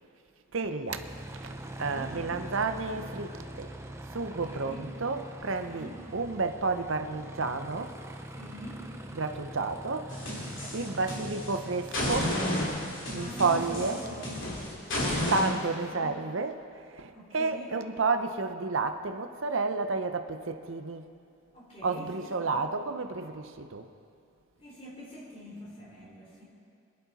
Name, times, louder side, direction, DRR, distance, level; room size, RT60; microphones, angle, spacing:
voice 1, 0.5-1.0 1.4-1.5 1.8-3.7 4.1-8.0 9.1-10.5 10.7-12.4 13.1-14.0 15.3-21.1 21.8-23.9, right 3 dB, 70° right, 8 dB, 0.7 m, -31 dB
Aircraft, 0.9-14.4, right 1 dB, 15° right, 0.6 m, -43 dB
voice 2, 1.8-2.1 4.3-4.8 5.7-6.0 8.3-8.8 10.5-10.9 13.1-15.6 15.9-16.1 17.1-17.7 21.5-22.5 24.6-26.4, equal, 25° left, -4 dB, 3.1 m, -45 dB
sound 1, 10.1-11.5 11.9-15.5, left 1 dB, 60° left, 3.2 m, -32 dB
21.5 x 11.0 x 4.1 m, 2.4 s
head